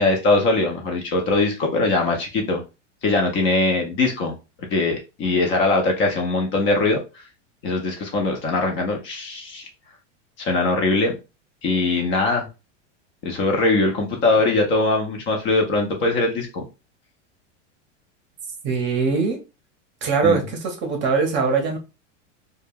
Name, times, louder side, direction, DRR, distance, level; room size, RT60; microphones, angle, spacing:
voice 1, 0.0-2.6 3.0-4.3 4.7-7.2 7.6-9.7 10.4-11.2 11.6-12.5 13.2-16.6 20.2-20.4, left 2 dB, 35° left, 0.6 m, -21 dB
voice 2, 18.6-19.4 20.0-21.8, right 5 dB, 30° right, 0.7 m, -21 dB
2.2 x 2.1 x 3.2 m
supercardioid pair, 135°, 36 cm